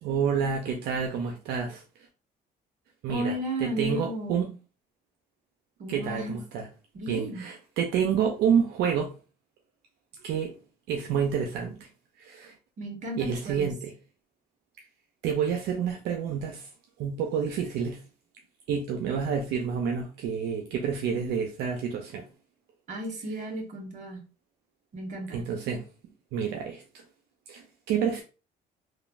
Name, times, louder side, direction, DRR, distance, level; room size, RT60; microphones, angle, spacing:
voice 1, 0.0-1.8 3.0-4.5 5.9-6.7 7.1-9.1 10.2-10.5 10.9-11.9 12.2-12.5 13.2-13.9 15.2-16.7 17.0-18.0 18.7-22.2 25.3-25.8 26.3-26.8 27.5-28.2, right 7 dB, 80° right, 0.5 m, -28 dB
voice 2, 3.1-4.5 5.8-6.4 6.9-7.5 12.8-13.7 22.9-24.2 24.9-25.4, right 1 dB, 50° right, 1.1 m, -34 dB
3.1 x 2.3 x 2.4 m
cardioid pair, 110°, 17 cm